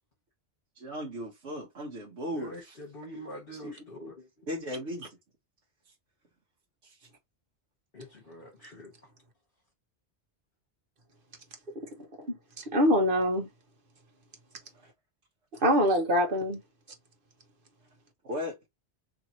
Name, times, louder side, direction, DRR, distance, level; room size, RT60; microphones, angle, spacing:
voice 1, 0.8-2.8 3.6-3.8 4.5-5.1 5.9-6.0 6.8-7.1 14.8-14.9 15.5-15.6 18.2-18.6, left 1 dB, 75° right, 1.3 m, -37 dB
voice 2, 2.2-4.5 7.9-9.1, equal, 55° left, 1.4 m, -45 dB
voice 3, 12.0-13.5 15.6-16.6, equal, 50° right, 1.4 m, -25 dB
3.3 x 3.0 x 4.0 m
omnidirectional pair, 1.2 m